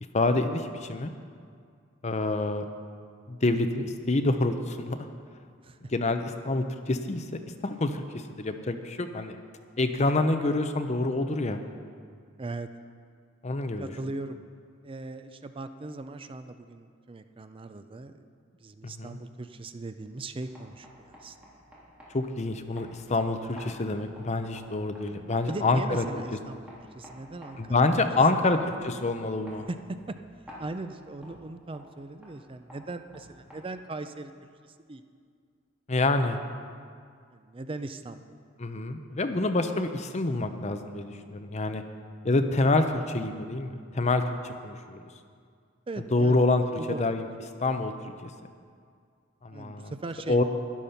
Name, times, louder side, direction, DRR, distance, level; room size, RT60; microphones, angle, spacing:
voice 1, 0.1-1.1 2.0-2.7 3.3-5.1 5.9-7.2 7.6-9.4 9.8-11.6 13.4-13.9 18.8-19.2 22.1-26.2 27.6-29.6 35.9-36.4 38.6-41.8 42.2-45.0 46.1-46.6 46.9-47.3 47.6-48.3 49.4-49.9 50.3-50.4, left 2 dB, 35° left, 7 dB, 0.7 m, -27 dB
voice 2, 12.4-12.7 13.8-14.4 14.8-18.2 18.6-21.4 25.5-26.7 26.9-27.8 28.4-28.5 29.7-29.8 30.1-30.2 30.6-34.3 34.6-35.0 37.3-38.2 45.9-46.5 46.7-47.1 49.5-50.4, right 2 dB, 30° right, 9 dB, 0.5 m, -39 dB
sound 1, 20.3-34.0, equal, 5° right, 3.3 m, -51 dB
12.0 x 11.0 x 5.7 m, 2.2 s
head